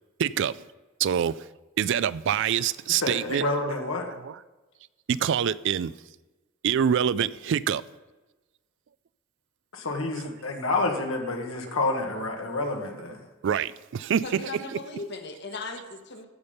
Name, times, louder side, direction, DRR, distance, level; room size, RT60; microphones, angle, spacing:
voice 1, 0.2-0.6 1.0-1.4 1.8-3.7 4.1-4.4 5.1-5.9 6.6-7.8 10.2-10.4 11.2-11.8 12.2-12.7 13.0-13.2 13.4-15.0, right 8 dB, 65° right, 0.3 m, -27 dB
voice 2, 3.0-4.1 9.7-13.2, left 2 dB, 85° left, 1.7 m, -29 dB
voice 3, 14.2-16.3, left 3 dB, 60° left, 1.3 m, -37 dB
14.5 x 5.2 x 5.6 m
head